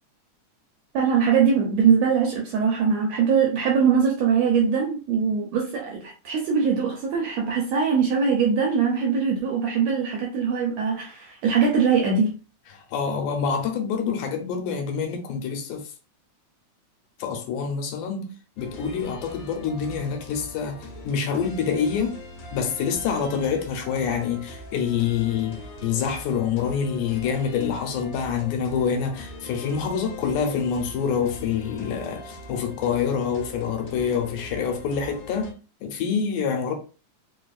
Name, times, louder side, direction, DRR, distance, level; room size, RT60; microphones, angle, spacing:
voice 1, 0.9-12.3, right 6 dB, 80° right, 1.6 m, -22 dB
voice 2, 12.7-15.9 17.2-22.2 22.5-35.5 35.8-36.7, left 6 dB, 80° left, 2.2 m, -26 dB
sound 1, 18.6-35.5, left 1 dB, 60° left, 2.0 m, -41 dB
4.9 x 2.3 x 2.4 m
omnidirectional pair, 3.6 m